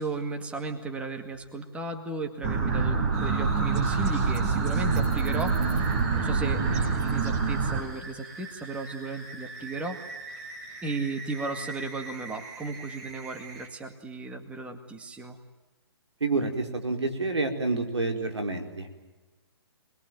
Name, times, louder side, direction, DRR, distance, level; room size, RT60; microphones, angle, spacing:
voice 1, 0.0-10.0 10.8-15.4, right 3 dB, 10° right, 5 dB, 2.1 m, -35 dB
sound 1, 2.4-7.8, right 4 dB, 40° right, 5.0 m, -26 dB
sound 2, 3.1-13.7, right 3 dB, 25° right, 6.3 m, -43 dB
voice 2, 16.2-18.9, right 3 dB, 85° right, 5 dB, 4.7 m, -28 dB
25.5 x 21.5 x 9.4 m, 1.2 s
hypercardioid pair, 140°, 14 cm